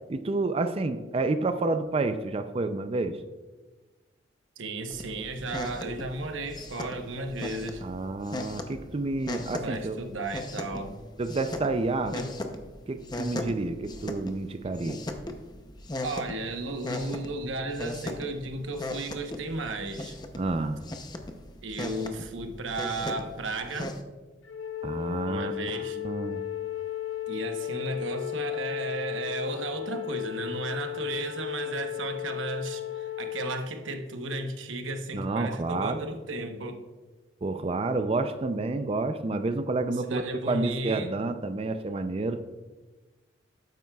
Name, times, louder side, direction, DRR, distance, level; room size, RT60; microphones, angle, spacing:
voice 1, 0.1-3.2 7.8-10.0 11.2-12.1 12.9-15.0 20.3-20.8 24.8-26.4 35.1-36.1 37.4-42.4, right 3 dB, 30° right, 9 dB, 0.4 m, -29 dB
voice 2, 4.6-7.8 9.6-11.0 12.1-12.3 16.0-20.2 21.6-24.0 25.3-26.0 27.3-36.8 40.0-41.1, right 2 dB, 80° right, 5 dB, 1.0 m, -34 dB
sound 1, 4.9-24.0, left 1 dB, 20° left, 0.6 m, -38 dB
Wind instrument woodwind instrument, 24.4-33.6, left 12 dB, 85° left, 0.7 m, -35 dB
12.0 x 9.3 x 2.3 m, 1.2 s
head